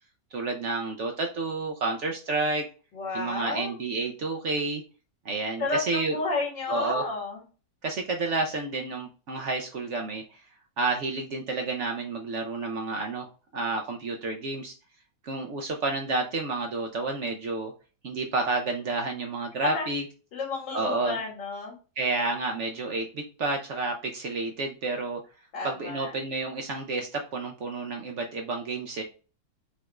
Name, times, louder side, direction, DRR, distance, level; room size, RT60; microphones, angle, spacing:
voice 1, 0.3-2.6 3.1-4.8 5.2-6.2 6.7-7.0 7.8-10.2 10.8-14.7 15.2-17.7 18.0-20.0 20.7-21.2 22.0-25.2 25.6-29.0, right 3 dB, 70° right, 2 dB, 0.6 m, -30 dB
voice 2, 2.9-3.8 5.6-7.4 19.6-19.9 20.3-21.8 25.5-26.1, left 3 dB, 70° left, -2 dB, 2.3 m, -31 dB
5.5 x 2.4 x 2.9 m, 0.36 s
omnidirectional pair, 2.0 m